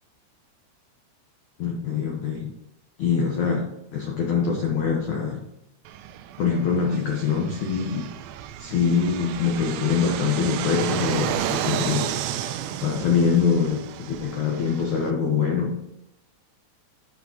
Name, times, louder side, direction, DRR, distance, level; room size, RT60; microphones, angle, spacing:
voice 1, 1.6-2.5 3.0-5.4 6.4-8.1 8.6-12.1 12.8-15.8, left 6 dB, 85° left, -1 dB, 1.6 m, -24 dB
Fixed-wing aircraft airplane, 5.9-15.1, right 11 dB, 85° right, 2.6 m, -32 dB
14.5 x 5.9 x 3.0 m, 0.84 s
omnidirectional pair, 5.5 m